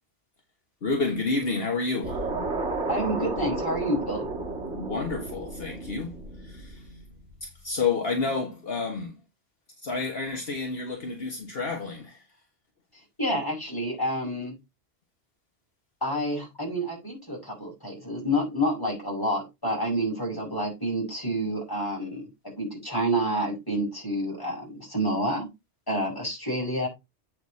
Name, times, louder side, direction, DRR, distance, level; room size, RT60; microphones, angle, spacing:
voice 1, 0.8-2.2 4.7-6.2 6.4-6.8 7.4-9.2 9.8-12.2, left 4 dB, 55° left, 1.6 m, -29 dB
sound 1, 2.0-7.3, right 2 dB, 90° right, 2.1 m, -33 dB
voice 2, 2.9-4.3 13.2-14.5 16.0-25.5 25.9-26.9, equal, 20° left, 5.6 m, -28 dB
8.1 x 6.6 x 4.1 m
omnidirectional pair, 1.2 m